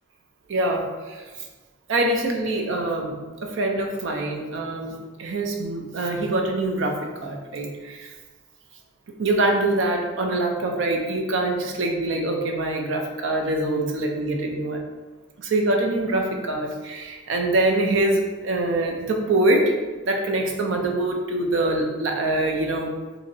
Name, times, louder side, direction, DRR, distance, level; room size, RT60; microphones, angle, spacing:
voice 1, 0.5-1.2 1.9-8.1 9.2-14.8 15.4-19.7 20.0-22.9, right 2 dB, 70° right, 3 dB, 0.4 m, -24 dB
3.0 x 2.7 x 2.6 m, 1.3 s
head